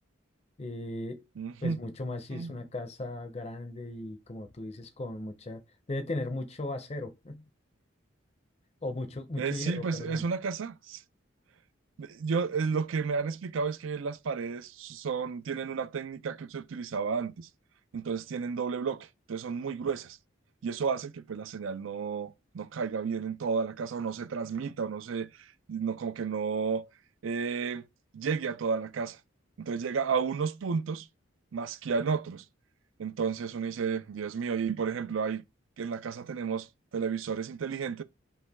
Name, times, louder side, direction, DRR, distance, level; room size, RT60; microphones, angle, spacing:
voice 1, 0.6-1.2 1.6-5.6 5.9-7.4 8.8-10.3, left 2 dB, 30° left, 0.6 m, -37 dB
voice 2, 1.4-1.8 2.3-2.5 9.4-11.0 12.0-17.5 17.9-20.2 20.6-26.9 27.2-27.9 28.1-29.2 29.6-31.1 31.5-32.4 33.0-35.4 35.8-36.7 36.9-38.0, right 5 dB, 75° right, 0.4 m, -32 dB
5.4 x 2.2 x 3.5 m
head